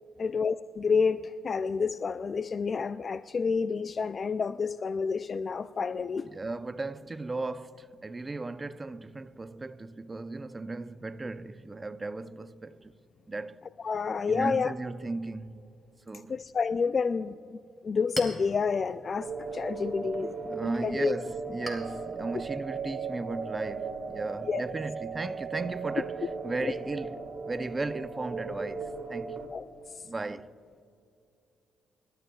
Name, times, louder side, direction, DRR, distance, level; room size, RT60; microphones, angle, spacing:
voice 1, 0.2-6.3 13.8-14.7 16.3-17.6 17.8-20.3 20.8-21.1 24.5-24.6 26.6-26.7 29.5-30.0, left 5 dB, 40° left, 0.3 m, -29 dB
voice 2, 6.2-12.9 13.3-13.6 14.3-15.8 16.1-16.4 19.8-19.9 20.4-29.4 30.0-30.5, right 3 dB, 25° right, 0.5 m, -36 dB
Chink clink, 17.6-24.7, equal, ahead, 3.3 m, -46 dB
sound 1, 19.2-29.5, right 4 dB, 65° right, 1.7 m, -37 dB
28.0 x 13.5 x 2.3 m
cardioid pair, 90°, 0 cm